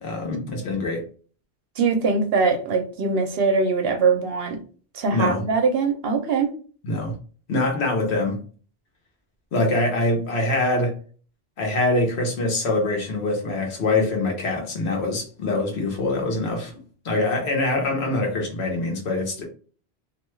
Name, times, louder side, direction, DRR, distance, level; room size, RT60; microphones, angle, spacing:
voice 1, 0.0-1.0 5.1-5.4 6.8-7.1 7.5-8.4 9.5-11.0 11.6-16.7 17.0-19.4, left 2 dB, 75° left, 1.1 m, -24 dB
voice 2, 1.8-4.6 4.9-6.5, right 4 dB, 65° right, 0.8 m, -22 dB
2.7 x 2.2 x 3.1 m
omnidirectional pair, 1.1 m